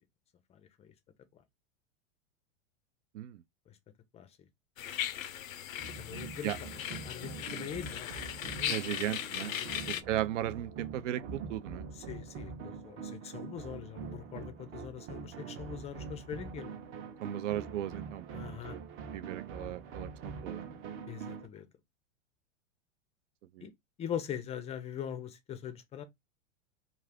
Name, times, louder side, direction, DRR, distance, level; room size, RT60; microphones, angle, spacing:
voice 1, 0.5-0.9 1.3-1.4 3.7-3.8 4.1-4.5 6.0-6.5 7.0-10.1 11.9-16.7 18.3-18.8 21.1-21.7 23.6-23.7 24.0-26.0, left 9 dB, 15° left, 0.4 m, -42 dB
sound 1, 4.8-10.0, left 10 dB, 85° left, 0.5 m, -38 dB
sound 2, 5.8-21.5, right 5 dB, 30° right, 0.7 m, -44 dB
voice 2, 8.7-9.5 9.9-11.9 17.2-18.8 19.1-20.8 23.5-23.7, right 12 dB, 65° right, 0.5 m, -36 dB
2.4 x 2.4 x 3.3 m
hypercardioid pair, 110°, 39 cm